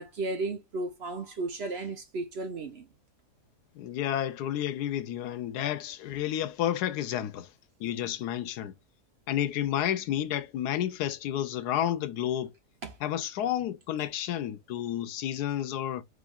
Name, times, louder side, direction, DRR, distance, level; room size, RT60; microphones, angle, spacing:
voice 1, 0.0-2.9 12.8-13.0, right 2 dB, 50° right, 0.8 m, -34 dB
voice 2, 3.7-7.5 7.8-8.7 9.3-12.5 13.0-16.0, left 11 dB, 90° left, 1.2 m, -31 dB
5.1 x 3.4 x 2.4 m
omnidirectional pair, 1.6 m